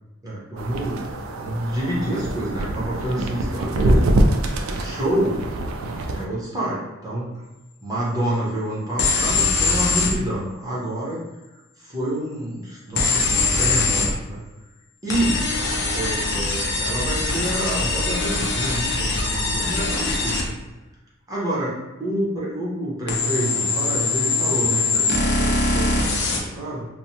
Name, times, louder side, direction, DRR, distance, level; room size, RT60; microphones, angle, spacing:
voice 1, 0.2-1.1 1.4-4.1 4.8-5.4 6.0-7.4 7.8-11.2 11.8-14.4 15.0-15.5 15.9-20.6 21.3-26.9, right 1 dB, 20° right, -7 dB, 0.8 m, -28 dB
sound 1, 0.6-6.2, right 1 dB, 80° right, 0.3 m, -24 dB
sound 2, 9.0-10.1 13.0-14.1 15.1-20.5 23.1-26.4, left 3 dB, 55° left, 0.5 m, -22 dB
3.1 x 2.0 x 2.7 m, 1.1 s
head